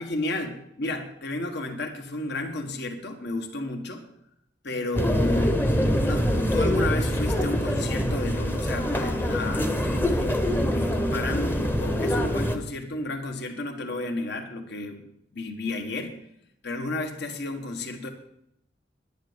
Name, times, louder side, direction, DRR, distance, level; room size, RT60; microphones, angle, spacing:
voice 1, 0.0-4.0 4.6-5.6 6.0-15.0 15.3-16.2 16.6-18.1, left 2 dB, 65° left, 5 dB, 1.6 m, -32 dB
sound 1, 4.9-12.6, equal, 10° left, 0.9 m, -24 dB
10.5 x 10.5 x 5.2 m, 0.77 s
head